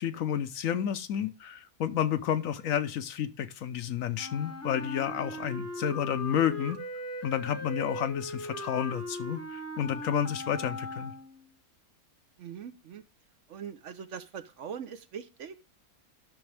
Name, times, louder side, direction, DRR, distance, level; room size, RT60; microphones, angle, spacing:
voice 1, 0.0-6.8 7.2-11.1, left 9 dB, 70° left, 1.0 m, -30 dB
Wind instrument woodwind instrument, 4.2-11.5, left 1 dB, 10° left, 0.9 m, -39 dB
voice 2, 12.4-13.0 13.5-15.6, right 7 dB, 60° right, 0.9 m, -42 dB
10.5 x 6.3 x 3.3 m
omnidirectional pair, 1.5 m